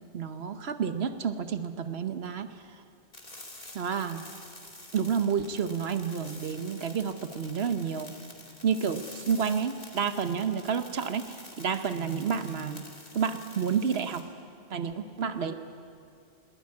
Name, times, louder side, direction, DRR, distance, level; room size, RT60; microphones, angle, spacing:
voice 1, 0.1-2.5 3.7-4.2 4.9-8.1 8.6-12.9 13.1-14.3 14.7-15.5, right 6 dB, 80° right, 10 dB, 1.2 m, -30 dB
sound 1, 3.1-14.2, left 1 dB, 40° left, 2.7 m, -48 dB
20.5 x 18.5 x 9.5 m, 2.3 s
omnidirectional pair, 1.0 m